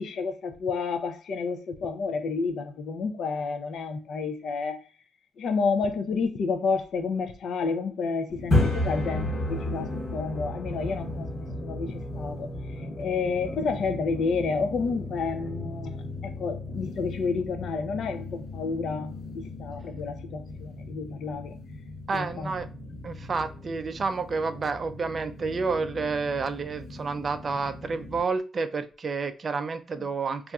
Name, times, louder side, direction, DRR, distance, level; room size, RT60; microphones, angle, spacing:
voice 1, 0.0-4.8 5.4-12.5 13.0-21.6 22.1-22.5, left 4 dB, 55° left, 0.4 m, -30 dB
sound 1, 8.3-28.2, left 2 dB, 35° left, 1.0 m, -34 dB
voice 2, 22.1-22.7 23.0-30.5, right 4 dB, 30° right, 0.4 m, -30 dB
4.0 x 2.4 x 2.3 m
cardioid pair, 150°, 0 cm